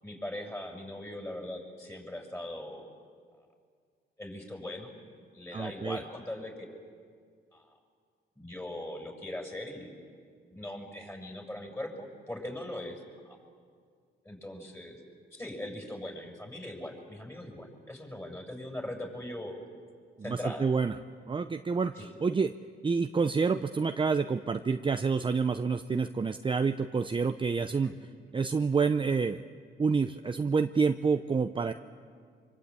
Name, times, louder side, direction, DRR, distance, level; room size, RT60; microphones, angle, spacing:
voice 1, 0.0-2.9 4.2-4.9 5.3-6.8 7.5-7.7 8.4-9.9 10.5-13.4 14.2-15.0 15.3-19.5 20.2-20.6 22.0-22.1 27.8-27.9, left 1 dB, 10° left, 2 dB, 7.1 m, -40 dB
voice 2, 5.5-6.0 20.2-21.0 21.3-22.5 22.8-27.9 28.3-29.4 29.8-31.7, right 5 dB, 25° right, 8 dB, 0.7 m, -28 dB
25.5 x 25.0 x 8.9 m, 2.1 s
cardioid pair, 90°, 20 cm